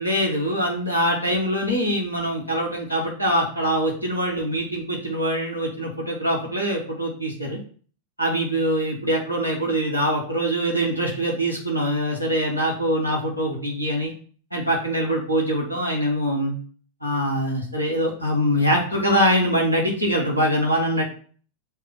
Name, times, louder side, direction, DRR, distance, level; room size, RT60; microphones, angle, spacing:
voice 1, 0.0-7.6 8.2-14.1 14.5-16.5 17.0-21.0, equal, 90° left, -2 dB, 1.3 m, -23 dB
6.3 x 2.2 x 3.6 m, 0.43 s
figure-of-eight pair, 90°, 0 cm